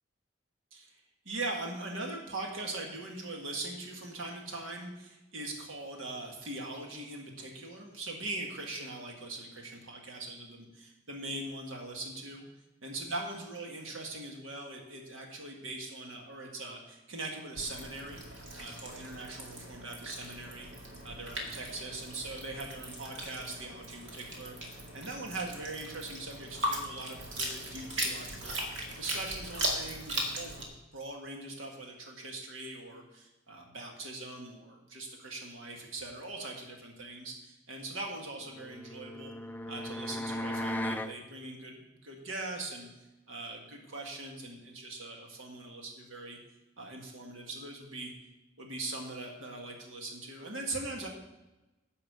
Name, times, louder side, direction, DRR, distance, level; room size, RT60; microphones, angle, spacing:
voice 1, 1.3-12.4 12.8-18.2 18.6-20.7 21.0-30.6 30.9-39.3 39.7-46.4 46.8-48.1 48.6-51.1, right 2 dB, 85° right, 1 dB, 1.7 m, -41 dB
sound 1, 17.5-30.6, right 1 dB, 70° right, 2.1 m, -38 dB
sound 2, 38.6-41.2, left 1 dB, 10° left, 0.4 m, -36 dB
10.5 x 5.6 x 6.7 m, 1.0 s
head